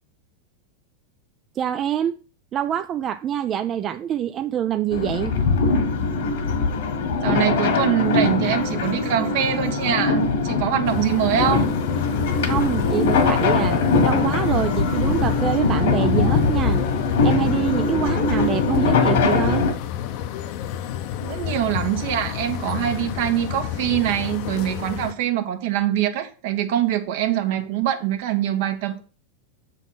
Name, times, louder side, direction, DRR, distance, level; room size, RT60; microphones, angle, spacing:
voice 1, 1.6-2.2 2.5-5.3 12.5-16.8 17.2-19.7, right 10 dB, 35° right, 0.4 m, -25 dB
sound 1, 4.9-19.7, left 4 dB, 75° left, 1.8 m, -21 dB
voice 2, 7.2-11.7 21.2-29.0, right 11 dB, 65° right, 1.3 m, -23 dB
sound 2, 10.8-25.1, left 11 dB, 55° left, 0.8 m, -30 dB
7.1 x 4.1 x 5.6 m
supercardioid pair, 120°, 0 cm